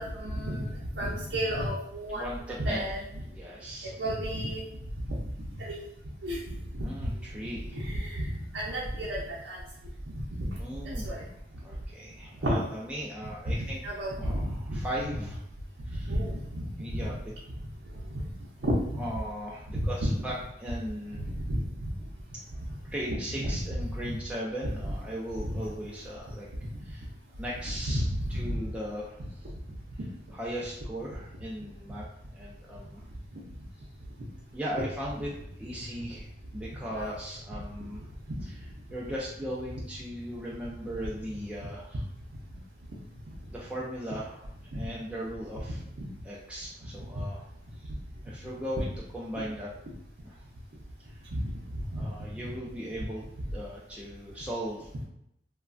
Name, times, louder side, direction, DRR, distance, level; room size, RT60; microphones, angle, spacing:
voice 1, 0.0-2.3 2.6-3.0 4.0-4.6 5.1-5.2 5.6-5.8 6.2-6.4 6.7-6.8 7.7-8.3 8.5-9.6 10.4-10.5 11.0-11.2 12.4-12.6 13.8-14.8 16.0-16.7 18.6-18.7 20.0-20.1 21.2-21.9 23.4-23.5 25.5-25.6 27.9-28.2 28.5-28.6 36.9-37.1 44.7-44.8 45.1-45.2 51.3-51.4 51.9-52.0, equal, 75° right, -6 dB, 0.6 m, -31 dB
voice 2, 2.1-2.8 3.2-3.9 6.8-7.8 10.6-11.1 11.6-13.8 14.2-15.4 15.9-16.1 16.8-17.2 19.0-21.2 22.8-26.5 26.8-27.1 27.4-28.0 28.3-29.2 30.3-32.0 32.3-33.1 34.5-35.3 35.6-36.3 36.5-38.0 38.9-42.0 43.5-44.5 44.7-45.8 46.2-47.4 47.7-47.9 48.2-49.7 50.2-50.5 51.0-51.2 51.9-53.2 53.5-54.9, equal, 5° right, -6 dB, 0.3 m, -38 dB
3.1 x 2.2 x 2.4 m, 0.80 s
head